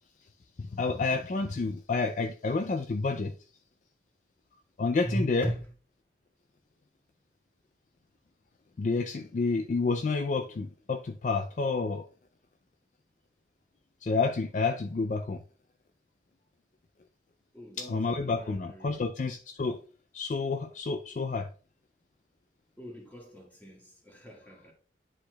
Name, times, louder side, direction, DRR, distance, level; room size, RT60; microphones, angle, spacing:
voice 1, 0.6-3.3 4.8-5.5 8.8-12.0 14.0-15.4 17.8-19.8 20.1-21.5, left 4 dB, 45° left, 0.4 m, -29 dB
voice 2, 5.0-5.7 17.5-19.0 22.8-24.7, right 1 dB, 10° left, 1.6 m, -38 dB
9.8 x 4.3 x 2.2 m
head